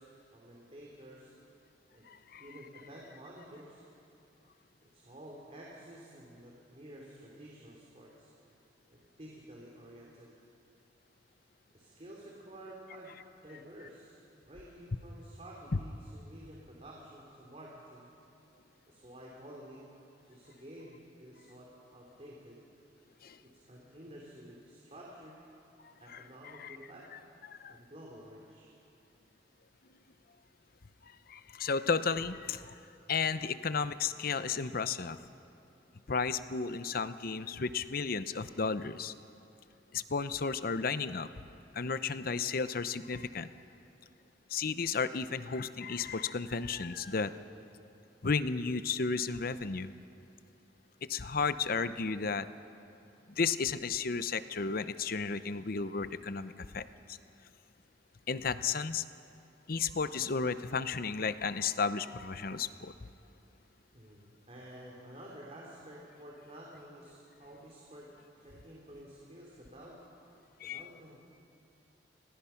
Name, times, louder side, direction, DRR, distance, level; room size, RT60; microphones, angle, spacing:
voice 1, 0.0-1.3 1.9-2.1 2.4-3.8 4.8-8.3 8.9-10.3 11.7-13.2 13.4-14.2 14.5-18.1 18.9-19.8 20.2-22.6 23.4-25.4 26.0-27.1 27.7-28.7 63.9-68.1 68.4-70.0 70.6-71.2, right 1 dB, 35° right, -4 dB, 3.3 m, -51 dB
voice 2, 2.1-2.5 15.7-15.8 23.2-23.4 26.1-26.2 26.6-26.8 27.1-27.2 27.5-27.8 31.3-32.8 33.1-35.2 36.1-39.1 39.9-41.3 41.7-43.5 44.5-47.3 48.2-49.9 51.0-52.5 53.3-57.2 58.3-59.0 59.7-62.9 70.6-70.9, left 5 dB, 55° left, 13 dB, 0.7 m, -33 dB
29.5 x 21.0 x 5.8 m, 2.8 s
head